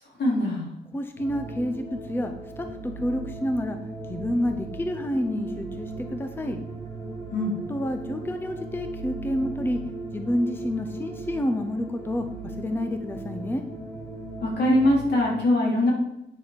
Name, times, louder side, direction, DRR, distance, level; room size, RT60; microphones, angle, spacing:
voice 1, 0.2-0.7 7.3-7.5 14.4-15.9, left 1 dB, 70° left, -3 dB, 3.7 m, -22 dB
voice 2, 0.9-3.8 4.1-6.6 7.7-9.8 10.1-13.6, left 1 dB, 10° left, 7 dB, 0.6 m, -29 dB
sound 1, 1.2-15.1, right 3 dB, 30° left, 3.8 m, -37 dB
9.3 x 6.8 x 5.1 m, 0.89 s
wide cardioid pair, 155°, 18 cm